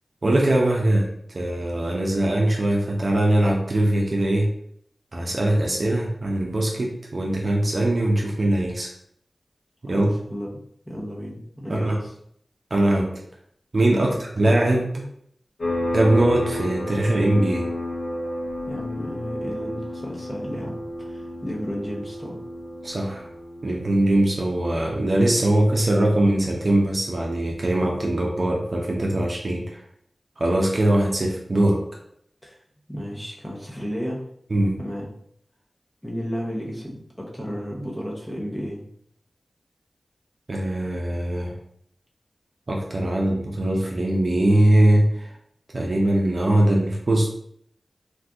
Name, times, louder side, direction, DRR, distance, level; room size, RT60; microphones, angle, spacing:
voice 1, 0.2-4.5 5.1-8.9 9.8-10.1 11.7-12.0 12.7-13.1 13.7-15.0 15.9-17.7 22.8-23.3 23.6-29.8 30.4-31.8 34.5-34.8 40.5-41.5 42.7-45.3 45.7-47.3, right 1 dB, 50° right, -1 dB, 0.6 m, -21 dB
voice 2, 9.8-10.6 10.8-12.1 14.0-14.2 18.6-22.4 32.4-32.6 32.9-34.2 34.8-35.1 36.0-38.8, equal, 5° left, -3 dB, 0.9 m, -33 dB
sound 1, 15.6-25.9, left 1 dB, 65° left, 0.9 m, -31 dB
2.6 x 2.6 x 3.5 m, 0.68 s
wide cardioid pair, 65°, 0 cm